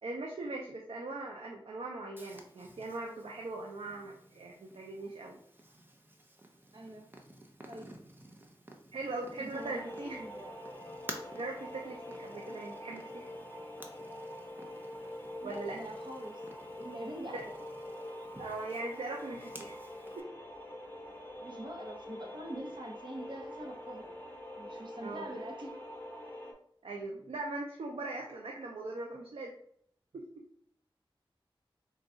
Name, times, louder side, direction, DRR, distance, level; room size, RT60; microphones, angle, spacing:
voice 1, 0.0-5.4 8.9-10.2 11.3-13.3 15.4-15.8 17.3-17.5 18.4-19.8 20.2-20.3 25.0-25.3 26.8-29.5 30.1-30.3, right 2 dB, 85° right, 0 dB, 0.5 m, -40 dB
Purr, 2.2-20.2, right 1 dB, 20° right, 0.6 m, -53 dB
voice 2, 6.7-7.1 7.7-7.9 9.4-10.5 15.4-16.4 16.8-17.6 18.2-18.3 21.4-24.1 24.6-25.7, right 1 dB, 55° right, 0 dB, 0.9 m, -45 dB
sound 1, 9.5-26.5, left 1 dB, 20° left, 0.9 m, -45 dB
3.8 x 2.3 x 3.8 m, 0.66 s
wide cardioid pair, 65°, 9 cm